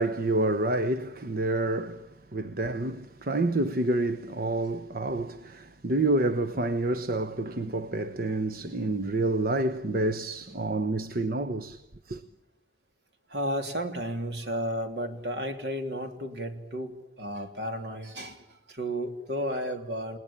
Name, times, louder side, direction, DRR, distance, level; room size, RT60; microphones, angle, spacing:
voice 1, 0.0-11.8 12.1-12.2, right 2 dB, 55° right, 0.9 m, -28 dB
voice 2, 13.3-20.2, equal, 70° right, 3.3 m, -33 dB
29.5 x 19.0 x 8.9 m
head